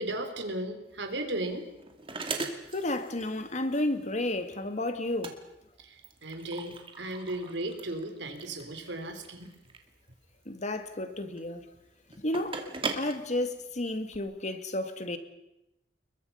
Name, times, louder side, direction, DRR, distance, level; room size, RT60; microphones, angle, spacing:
voice 1, 0.0-1.7 5.8-6.0 6.2-9.5, right 1 dB, 85° right, 3.9 m, -35 dB
sound 1, 0.9-14.2, right 4 dB, 30° right, 2.6 m, -41 dB
voice 2, 2.7-5.3 10.5-11.6 12.2-12.6 13.0-15.2, left 1 dB, 40° left, 2.1 m, -32 dB
29.0 x 22.0 x 5.7 m
head